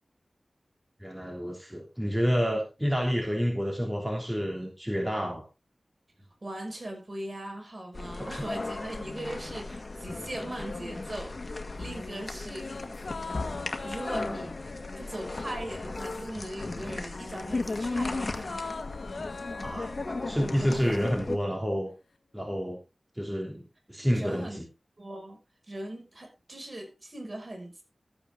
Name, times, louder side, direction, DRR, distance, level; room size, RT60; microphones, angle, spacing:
voice 1, 1.0-5.4 8.2-8.3 19.6-19.9 20.3-21.9 22.3-22.8 23.1-23.6 23.9-24.6, equal, 5° right, 1 dB, 3.1 m, -29 dB
voice 2, 6.4-12.7 13.8-14.5 15.0-18.7 24.1-24.6 25.0-25.4 25.7-27.8, right 1 dB, 40° right, 2 dB, 5.8 m, -39 dB
sound 1, 7.9-21.4, left 3 dB, 55° left, 1.9 m, -36 dB
sound 2, 11.8-16.5 16.8-21.1 21.4-21.5, left 4 dB, 70° left, 1.2 m, -42 dB
14.0 x 8.7 x 3.8 m, 0.28 s
cardioid pair, 45°, 0 cm